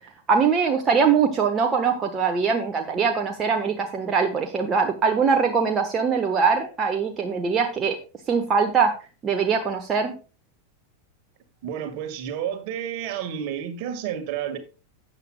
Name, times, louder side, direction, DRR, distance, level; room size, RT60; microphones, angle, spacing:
voice 1, 0.3-8.0 8.3-8.9 9.2-10.2, right 5 dB, 25° right, 3 dB, 1.2 m, -22 dB
voice 2, 11.6-14.6, right 9 dB, 45° right, 8 dB, 1.7 m, -30 dB
13.0 x 9.0 x 2.3 m, 0.33 s
figure-of-eight pair, 90°, 0 cm